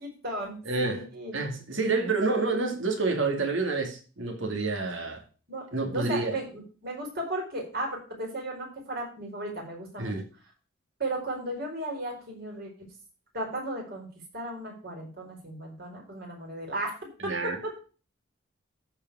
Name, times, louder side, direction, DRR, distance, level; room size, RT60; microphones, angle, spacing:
voice 1, 0.0-1.4 5.5-10.1 11.0-12.9 13.3-14.1 14.3-17.0 17.4-17.5, right 1 dB, 50° right, 4.7 m, -35 dB
voice 2, 0.7-1.1 1.3-5.2 5.7-6.4 10.0-10.2 17.2-17.6, right 3 dB, 70° right, 2.5 m, -28 dB
14.5 x 5.1 x 4.7 m
head